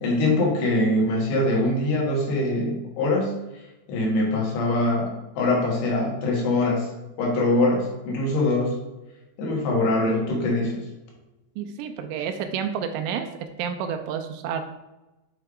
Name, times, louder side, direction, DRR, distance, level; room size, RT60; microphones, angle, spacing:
voice 1, 0.0-3.6 3.9-6.9 7.2-8.8 9.4-10.9, left 2 dB, 70° left, -2 dB, 3.4 m, -23 dB
voice 2, 11.6-13.3 13.6-14.6, right 7 dB, 85° right, 7 dB, 2.7 m, -29 dB
8.1 x 3.3 x 4.8 m, 1.0 s
omnidirectional pair, 5.1 m